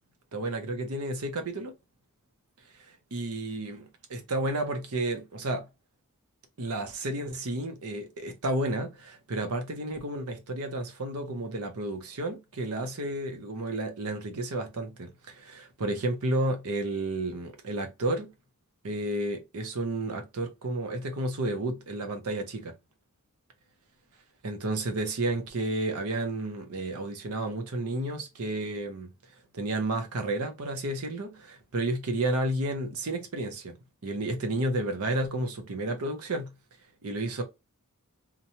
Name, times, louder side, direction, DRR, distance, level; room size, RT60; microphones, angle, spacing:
voice 1, 0.3-1.7 2.9-5.6 6.6-18.3 18.8-22.7 24.4-29.1 29.5-33.7 34.0-36.5 37.0-37.4, right 1 dB, 75° right, 0.7 m, -31 dB
2.9 x 2.2 x 2.7 m
head